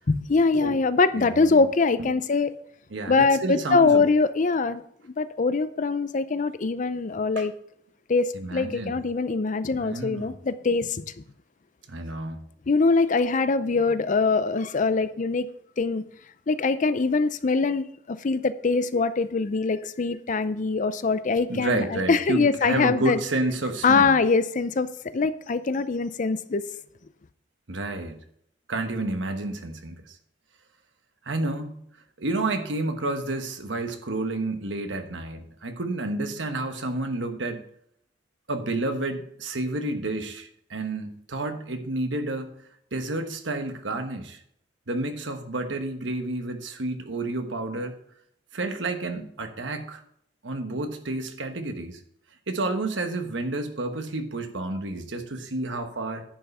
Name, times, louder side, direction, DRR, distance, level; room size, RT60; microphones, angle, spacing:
voice 1, 0.1-2.5 3.1-4.8 5.2-7.5 8.1-11.0 12.7-15.5 15.8-16.0 16.5-23.2 23.8-26.6, left 4 dB, 45° left, 0.5 m, -23 dB
voice 2, 1.1-1.6 2.0-2.1 2.9-4.0 7.4-7.5 8.3-9.0 9.8-10.3 11.9-12.4 21.5-24.1 27.7-28.2 28.7-30.1 31.3-31.8 32.2-37.7 38.5-42.5 42.9-44.4 44.9-48.0 48.5-50.0 50.4-52.0 52.5-56.2, right 2 dB, 85° right, 1.2 m, -30 dB
10.0 x 5.7 x 5.4 m
head